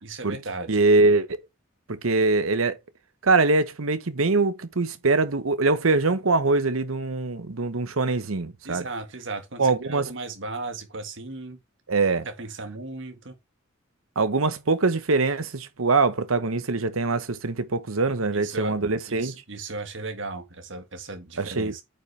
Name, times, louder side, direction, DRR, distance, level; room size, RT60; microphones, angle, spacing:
voice 1, 0.0-0.8 8.6-11.6 12.2-13.4 18.3-18.7 19.1-21.8, right 3 dB, 60° right, 1.7 m, -36 dB
voice 2, 0.7-1.4 1.9-2.8 3.2-8.8 9.6-10.1 11.9-12.3 14.2-19.3 21.4-21.7, right 3 dB, 85° right, 1.1 m, -23 dB
9.0 x 5.5 x 3.4 m
head